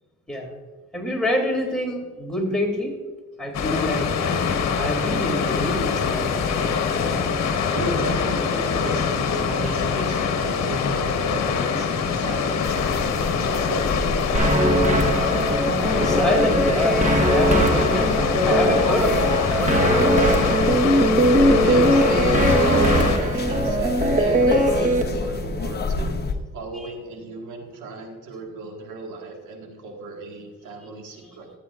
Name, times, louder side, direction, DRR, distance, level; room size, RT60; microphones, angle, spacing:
voice 1, 0.9-2.9 3.4-4.1 4.8-6.3 16.0-18.1 18.4-20.2, left 1 dB, ahead, -1 dB, 2.8 m, -26 dB
Water, 3.5-23.2, left 6 dB, 60° left, 1.1 m, -24 dB
voice 2, 7.7-9.1 9.4-14.3 21.6-26.2 26.5-31.5, right 2 dB, 85° right, 1 dB, 1.8 m, -34 dB
sound 1, 12.6-26.3, left 3 dB, 35° left, 1.0 m, -30 dB
sound 2, 14.3-25.0, right 1 dB, 25° right, 1.3 m, -20 dB
13.5 x 8.6 x 2.5 m, 1.3 s
cardioid pair, 90°, 30 cm